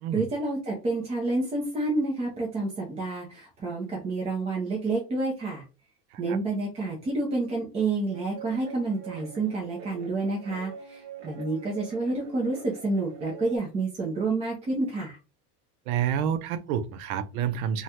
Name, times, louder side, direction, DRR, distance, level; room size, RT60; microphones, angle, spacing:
voice 1, 0.1-5.6 6.2-15.2, right 3 dB, 15° right, 0.6 m, -29 dB
Guitar, 8.1-13.6, right 6 dB, 40° right, 0.9 m, -44 dB
voice 2, 15.9-17.8, right 8 dB, 80° right, 0.6 m, -29 dB
3.1 x 2.3 x 2.8 m
supercardioid pair, 155°, 43 cm